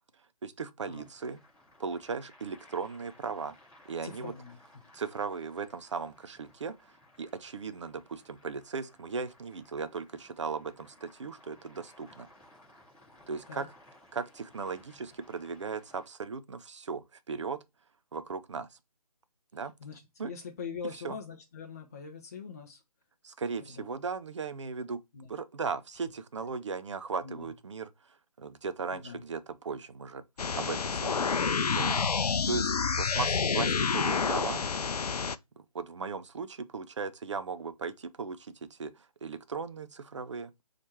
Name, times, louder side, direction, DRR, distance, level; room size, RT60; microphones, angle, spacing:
voice 1, 0.4-1.4 1.8-3.5 3.9-4.3 4.9-6.9 7.2-12.3 13.3-13.7 14.1-17.6 18.1-18.7 19.5-19.7 20.2-20.3 21.0-21.2 23.2-25.0 25.3-27.9 28.4-30.2 30.5-31.3 31.7-32.7 32.9-34.6 35.6-40.5, right 5 dB, 50° right, 0.5 m, -37 dB
sound 1, 0.9-16.0, left 1 dB, 10° left, 1.9 m, -59 dB
voice 2, 4.0-4.8 13.5-13.6 19.8-22.8 23.6-23.9 25.1-25.3 27.2-27.5 28.9-29.2, left 6 dB, 25° left, 0.5 m, -43 dB
sound 2, 30.4-35.4, left 5 dB, 85° left, 0.4 m, -28 dB
4.3 x 2.5 x 4.4 m
figure-of-eight pair, 150°, 19 cm